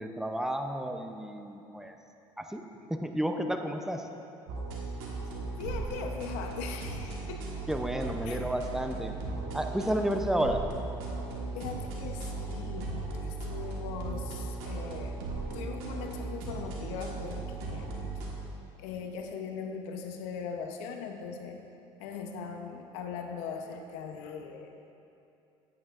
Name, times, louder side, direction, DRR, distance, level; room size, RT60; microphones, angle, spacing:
voice 1, 0.0-2.0 2.4-2.6 2.9-4.1 7.7-9.2 9.5-10.7, right 1 dB, 5° right, 5 dB, 0.5 m, -31 dB
sound 1, 4.5-18.3, right 3 dB, 85° right, 1.3 m, -37 dB
voice 2, 5.6-7.5 8.2-8.4 11.5-12.9 13.2-15.2 15.5-17.9 18.1-18.2 18.8-21.6 22.0-24.7, left 6 dB, 80° left, 4 dB, 0.7 m, -40 dB
9.0 x 8.5 x 2.4 m, 2.8 s
supercardioid pair, 110°, 12 cm